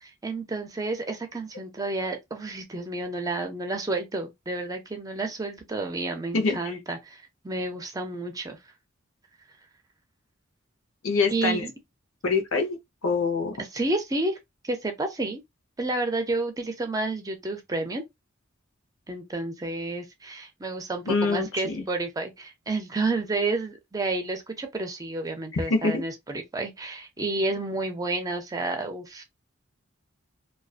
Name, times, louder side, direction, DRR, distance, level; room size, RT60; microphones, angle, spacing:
voice 1, 0.0-8.6 11.3-11.7 13.6-14.4 14.6-15.4 15.8-18.0 19.1-29.2, right 2 dB, 20° right, 0.5 m, -30 dB
voice 2, 11.0-11.6 12.2-13.6 21.1-21.8 25.5-26.0, left 4 dB, 80° left, 0.8 m, -25 dB
2.4 x 2.3 x 2.4 m
head